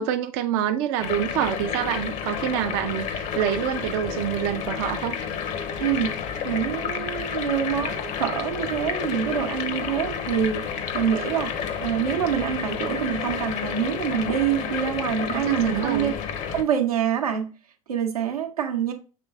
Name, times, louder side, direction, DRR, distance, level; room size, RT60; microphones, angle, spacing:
voice 1, 0.0-5.2 15.3-16.1, right 10 dB, 50° right, 0.4 m, -27 dB
sound 1, 1.0-16.6, left 7 dB, 40° left, 0.6 m, -30 dB
voice 2, 5.8-6.1 6.4-16.2 16.5-17.5 17.9-18.9, right 8 dB, 85° right, 0.8 m, -26 dB
5.9 x 3.1 x 2.3 m
hypercardioid pair, 85°, 18 cm